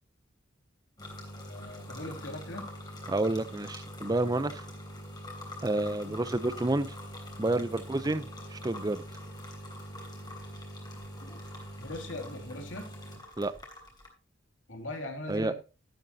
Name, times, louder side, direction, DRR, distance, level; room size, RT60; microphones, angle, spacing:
sound 1, 1.0-14.1, equal, 20° left, 3.4 m, -43 dB
voice 1, 1.4-2.7 6.0-6.3 11.2-11.4 11.8-12.9 14.7-15.5, left 1 dB, 80° left, 2.6 m, -40 dB
voice 2, 3.1-4.6 5.6-7.0 7.4-9.0 13.4-13.5 15.3-15.5, right 2 dB, 20° right, 0.6 m, -29 dB
12.0 x 11.5 x 2.8 m
head